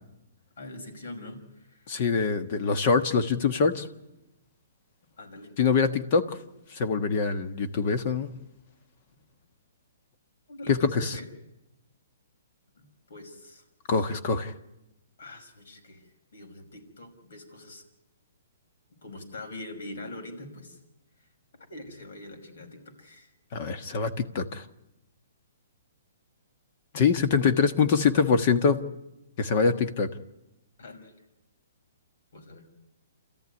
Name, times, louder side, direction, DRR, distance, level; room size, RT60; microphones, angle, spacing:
voice 1, 0.6-1.9 5.2-5.5 10.5-11.3 12.8-14.1 15.2-17.8 18.9-20.8 21.2-21.3 21.5-23.3 30.8-31.2 32.3-32.7, left 2 dB, 70° left, 6 dB, 5.5 m, -44 dB
voice 2, 1.9-3.9 5.6-6.2 6.7-8.3 10.7-11.1 13.9-14.5 23.5-24.6 26.9-28.8 29.4-30.1, left 5 dB, 40° left, 9 dB, 1.4 m, -24 dB
29.0 x 14.0 x 9.7 m, 0.97 s
hypercardioid pair, 160°, 0 cm